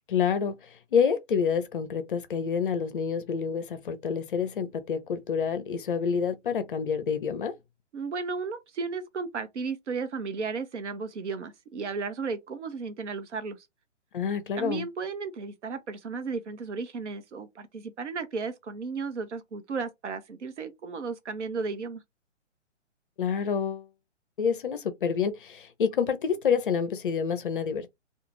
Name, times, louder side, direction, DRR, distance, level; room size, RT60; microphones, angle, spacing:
voice 1, 0.1-7.6 14.1-14.9 23.2-23.9 24.4-27.9, left 6 dB, 45° left, 0.5 m, -28 dB
voice 2, 7.9-13.6 14.6-22.0, right 4 dB, 70° right, 0.8 m, -34 dB
2.4 x 2.4 x 3.1 m
hypercardioid pair, 145°, 36 cm